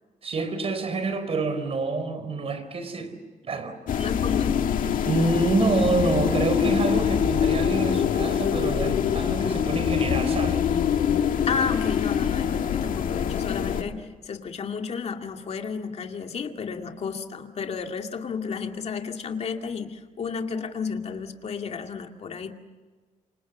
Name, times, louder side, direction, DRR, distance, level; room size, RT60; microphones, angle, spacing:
voice 1, 0.2-3.2 3.4-3.8 5.1-10.6, right 3 dB, 45° right, 10 dB, 4.2 m, -27 dB
sound 1, 3.9-13.8, left 8 dB, 75° left, 1.9 m, -24 dB
voice 2, 4.0-4.6 11.5-22.6, left 5 dB, 50° left, 4 dB, 2.3 m, -32 dB
28.0 x 26.5 x 7.3 m, 1.4 s
cardioid pair, 130°, 14 cm